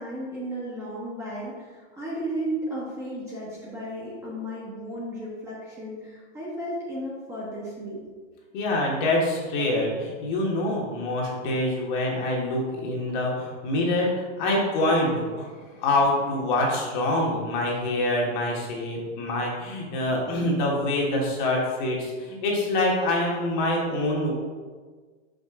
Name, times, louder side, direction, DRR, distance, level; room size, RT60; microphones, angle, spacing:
voice 1, 0.0-8.0, right 1 dB, 10° right, -7 dB, 1.1 m, -34 dB
voice 2, 8.5-24.3, left 1 dB, 40° left, -2 dB, 1.5 m, -25 dB
5.6 x 5.3 x 3.7 m, 1.5 s
hypercardioid pair, 150°, 37 cm